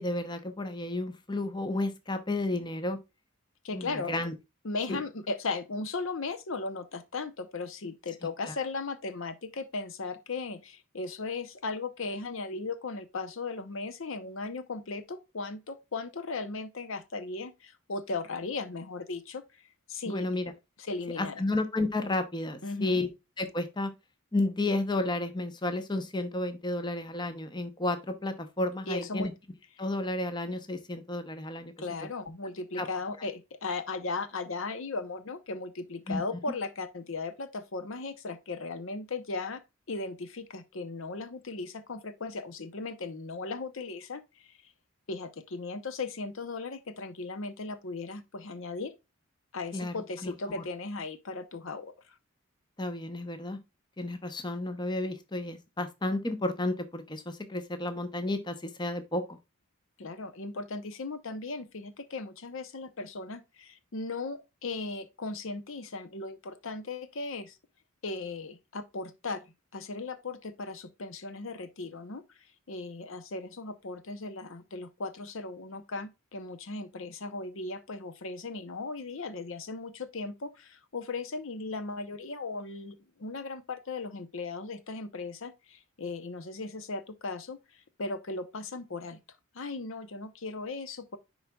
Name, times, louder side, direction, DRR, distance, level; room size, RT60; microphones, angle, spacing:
voice 1, 0.0-3.0 3.7-4.3 4.9-5.0 8.5-8.6 20.1-20.5 21.2-23.1 23.4-23.9 24.3-29.3 29.8-31.7 32.8-32.9 36.1-36.2 49.7-49.9 50.2-50.6 52.8-53.6 54.0-59.4, left 2 dB, 20° left, 0.7 m, -32 dB
voice 2, 3.6-4.1 4.6-20.3 20.8-21.4 22.6-23.0 28.9-29.3 31.8-44.7 45.1-49.0 49.5-52.2 60.0-67.6 68.0-72.4 72.7-89.2 89.5-91.2, left 3 dB, 65° left, 0.8 m, -37 dB
10.5 x 4.0 x 2.3 m
head